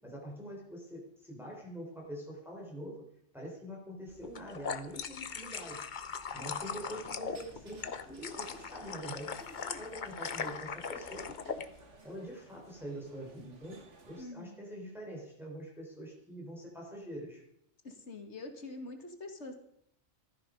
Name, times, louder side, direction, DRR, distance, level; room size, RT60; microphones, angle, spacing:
voice 1, 0.0-3.1 3.3-5.8 6.3-11.6 12.0-17.4, equal, ahead, -3 dB, 4.1 m, -45 dB
sound 1, 4.2-11.7, left 6 dB, 45° left, 0.9 m, -40 dB
sound 2, 6.7-14.2, right 3 dB, 85° right, 2.1 m, -57 dB
voice 2, 14.2-14.6 17.8-19.6, left 2 dB, 70° left, 5 dB, 2.2 m, -45 dB
15.5 x 13.5 x 5.2 m, 0.73 s
omnidirectional pair, 1.2 m